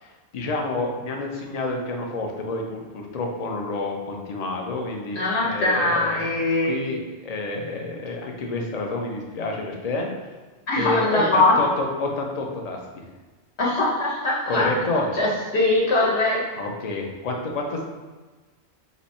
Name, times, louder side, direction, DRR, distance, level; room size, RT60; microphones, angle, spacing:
voice 1, 0.0-10.1 10.7-13.0 14.5-15.1 16.6-17.9, left 2 dB, 45° left, 1 dB, 0.6 m, -29 dB
voice 2, 5.1-6.7 10.7-11.5 13.6-14.7 15.2-15.3 15.5-16.4, left 2 dB, 75° left, -4 dB, 1.3 m, -21 dB
4.1 x 2.7 x 4.2 m, 1.3 s
omnidirectional pair, 1.1 m